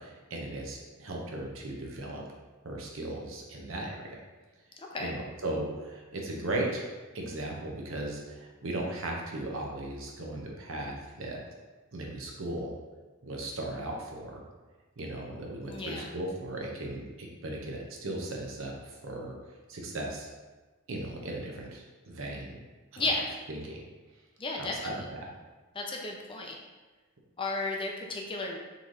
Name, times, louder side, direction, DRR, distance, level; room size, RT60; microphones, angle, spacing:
voice 1, 0.0-2.2 2.6-4.2 5.0-6.9 7.1-11.4 11.9-12.7 13.2-14.4 15.0-19.3 19.7-20.3 20.9-22.6 22.9-23.1 23.5-23.8 24.6-25.3, right 1 dB, 70° right, -1 dB, 0.8 m, -37 dB
voice 2, 15.6-16.1 23.0-23.2 24.4-25.0 25.7-26.6 27.4-28.6, left 2 dB, 25° left, 0 dB, 0.5 m, -33 dB
4.0 x 3.2 x 3.9 m, 1.3 s
head